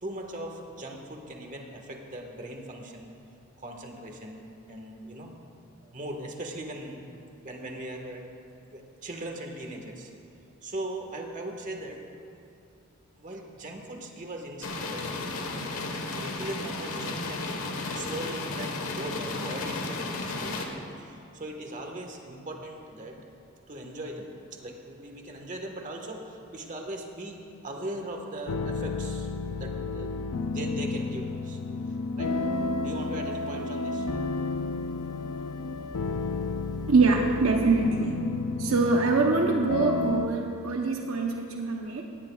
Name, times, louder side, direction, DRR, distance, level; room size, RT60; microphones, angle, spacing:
voice 1, 0.0-3.1 3.6-5.3 5.8-7.1 7.4-8.3 8.7-10.1 10.6-12.0 13.2-15.3 16.1-17.6 17.9-20.5 21.0-23.2 23.7-27.4 27.6-31.6 32.1-32.3 32.8-34.1, right 1 dB, 35° right, 2 dB, 1.5 m, -39 dB
sound 1, 14.6-20.7, left 3 dB, 70° left, 1.4 m, -33 dB
sound 2, 28.5-40.3, left 3 dB, 85° left, 0.5 m, -32 dB
Guitar, 32.2-37.8, left 2 dB, 20° left, 0.4 m, -40 dB
voice 2, 36.9-38.2 38.6-42.0, right 3 dB, 70° right, 2 dB, 0.9 m, -24 dB
18.0 x 17.5 x 2.4 m, 2.6 s
head